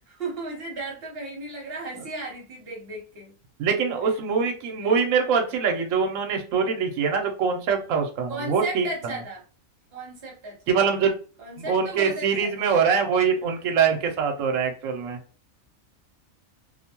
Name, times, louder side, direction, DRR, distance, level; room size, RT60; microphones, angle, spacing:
voice 1, 0.0-3.3 4.8-5.0 8.3-9.4 9.9-10.6 11.4-12.7, right 2 dB, 50° right, 1.1 m, -35 dB
voice 2, 3.6-8.9 10.7-11.1 11.6-15.2, right 6 dB, 70° right, 1.0 m, -23 dB
2.6 x 2.2 x 2.8 m
omnidirectional pair, 1.4 m